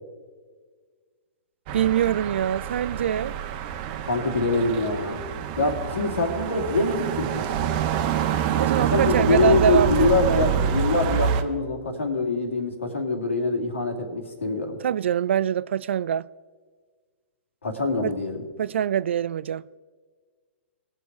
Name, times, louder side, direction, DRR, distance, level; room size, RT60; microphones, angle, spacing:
sound 1, 1.7-11.4, right 8 dB, 45° right, 0.9 m, -27 dB
voice 1, 1.7-3.3 8.5-10.4 14.8-16.3 18.0-18.1 18.6-19.6, right 9 dB, 70° right, 0.3 m, -24 dB
voice 2, 4.0-5.2 5.6-7.4 8.8-14.8 17.6-18.4, left 3 dB, 90° left, 2.3 m, -24 dB
19.5 x 6.6 x 4.6 m
hypercardioid pair, 125°, 7 cm